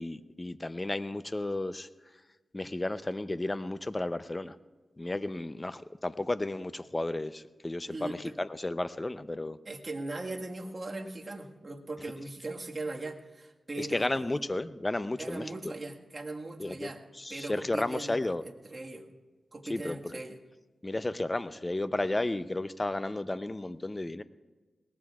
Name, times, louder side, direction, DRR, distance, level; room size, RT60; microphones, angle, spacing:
voice 1, 0.0-1.9 2.5-4.5 5.0-9.6 13.8-15.4 16.6-16.9 17.2-18.4 19.7-20.0 20.8-24.2, left 2 dB, 25° left, 13 dB, 0.6 m, -33 dB
voice 2, 7.9-8.4 9.6-14.3 15.2-17.0 17.3-19.1 19.5-20.4, right 2 dB, 45° right, 1 dB, 1.7 m, -39 dB
22.5 x 19.0 x 2.4 m, 1.2 s
cardioid pair, 50°, 0 cm